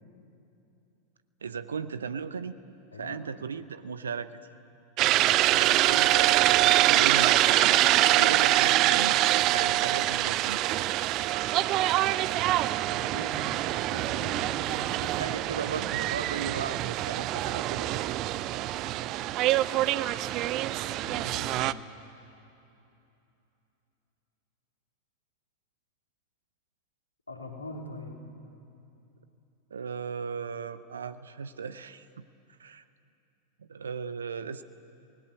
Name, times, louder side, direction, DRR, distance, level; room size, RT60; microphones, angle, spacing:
voice 1, 1.4-2.5 3.0-4.3 5.5-6.4 6.6-7.8 8.2-9.2 9.5-10.6 15.2-18.0 29.7-32.1 32.6-32.8 33.6-34.6, right 6 dB, 70° right, 13 dB, 0.8 m, -36 dB
sound 1, 5.0-21.7, right 15 dB, 40° right, 0.5 m, -25 dB
voice 2, 5.5-5.8 12.9-15.2 21.0-21.8 27.3-28.2, left 1 dB, 80° left, 0 dB, 3.2 m, -42 dB
27.0 x 19.5 x 8.1 m, 2.8 s
figure-of-eight pair, 90°, 0 cm